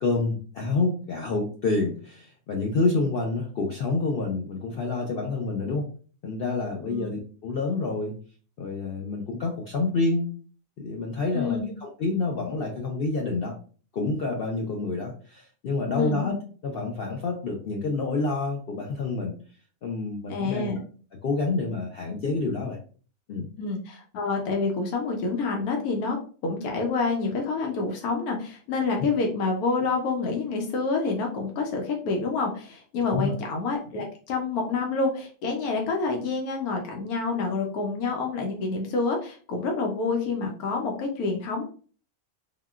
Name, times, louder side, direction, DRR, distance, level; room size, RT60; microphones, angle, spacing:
voice 1, 0.0-5.9 6.2-8.1 8.6-10.3 10.8-13.6 13.9-16.4 16.6-19.3 19.8-20.7 21.2-22.8 23.3-23.5 33.1-33.3, left 3 dB, 70° left, 1 dB, 0.5 m, -28 dB
voice 2, 11.3-11.7 15.9-16.2 20.3-20.8 23.6-26.2 26.4-41.6, left 4 dB, 90° left, 2 dB, 1.1 m, -28 dB
3.6 x 2.2 x 2.3 m, 0.40 s
omnidirectional pair, 1.5 m